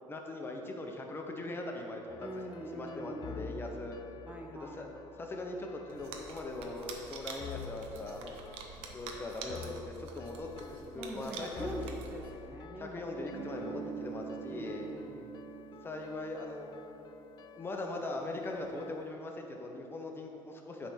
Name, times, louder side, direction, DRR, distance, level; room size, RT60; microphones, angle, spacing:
voice 1, 0.1-2.3 2.7-4.0 4.6-4.9 5.2-8.3 8.9-12.0 12.8-14.9 15.8-16.7 17.6-20.9, left 2 dB, 20° left, 2 dB, 0.7 m, -40 dB
sound 1, 2.1-19.1, left 6 dB, 40° left, 0.3 m, -50 dB
voice 2, 2.2-3.6 4.3-4.9 10.9-13.3 13.7-14.2 14.5-15.3, right 1 dB, 15° right, 1 dB, 0.6 m, -44 dB
sound 2, 5.9-12.5, right 5 dB, 75° right, 0.8 m, -47 dB
Guitar, 13.3-17.9, right 9 dB, 55° right, 0.4 m, -46 dB
8.7 x 3.4 x 5.5 m, 2.9 s
cardioid pair, 115°, 10 cm